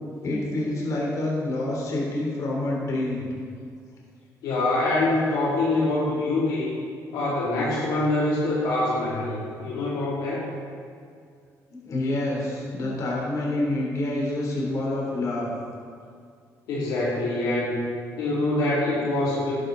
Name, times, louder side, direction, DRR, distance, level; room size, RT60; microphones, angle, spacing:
voice 1, 0.2-3.3 11.7-15.5, left 2 dB, 55° left, -3 dB, 3.3 m, -27 dB
voice 2, 4.4-6.7 7.1-10.5 16.7-17.9 18.2-19.5, left 2 dB, 90° left, -6 dB, 2.8 m, -25 dB
12.0 x 11.0 x 3.9 m, 2.2 s
cardioid pair, 100°, 6 cm